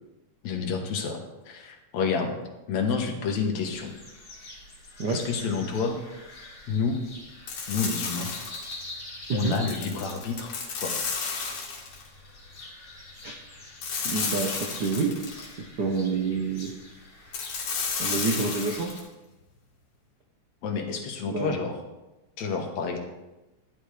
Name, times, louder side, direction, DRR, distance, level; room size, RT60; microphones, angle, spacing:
voice 1, 0.4-1.2 1.5-2.4 2.7-3.9 5.1-6.0 6.7-7.0 7.7-8.3 9.3-10.5 10.8-11.0 20.6-21.8 22.4-23.0, left 5 dB, 70° left, 3 dB, 2.6 m, -29 dB
sound 1, 3.6-19.0, left 2 dB, 35° left, 3.1 m, -45 dB
sound 2, 7.5-8.8 9.5-12.1 13.8-15.5 17.3-19.0, left 5 dB, 85° left, 3.4 m, -32 dB
voice 2, 14.0-15.1 15.6-16.7 18.0-18.9 21.3-21.5, right 4 dB, 65° right, 1 dB, 1.0 m, -28 dB
15.0 x 11.0 x 3.4 m, 1.0 s
omnidirectional pair, 3.4 m